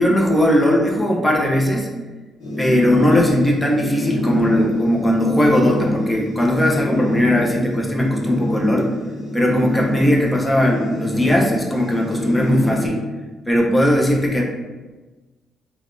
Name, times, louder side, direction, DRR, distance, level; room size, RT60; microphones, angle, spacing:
voice 1, 0.0-1.9 2.6-8.9 9.3-13.0 13.5-14.4, equal, 10° left, -1 dB, 0.6 m, -18 dB
Air Duct Hum, 2.4-12.9, left 1 dB, 80° left, 0.9 m, -26 dB
3.3 x 2.2 x 2.5 m, 1.3 s
cardioid pair, 90°, 0 cm